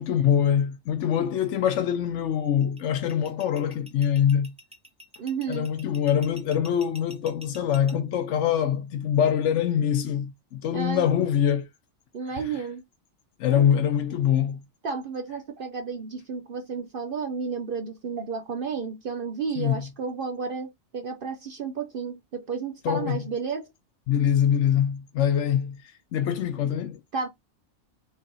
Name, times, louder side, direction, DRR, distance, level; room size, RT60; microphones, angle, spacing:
voice 1, 0.0-4.5 5.5-11.7 12.3-12.5 13.4-14.6 19.6-19.8 22.8-23.2 24.1-27.0, left 9 dB, 70° left, 0.9 m, -24 dB
sound 1, 2.6-7.9, equal, 5° right, 0.6 m, -47 dB
voice 2, 5.2-5.7 10.7-11.3 12.1-12.8 13.5-13.7 14.8-23.7 27.1-27.3, right 5 dB, 55° right, 0.7 m, -32 dB
4.0 x 3.4 x 3.9 m
omnidirectional pair, 1.4 m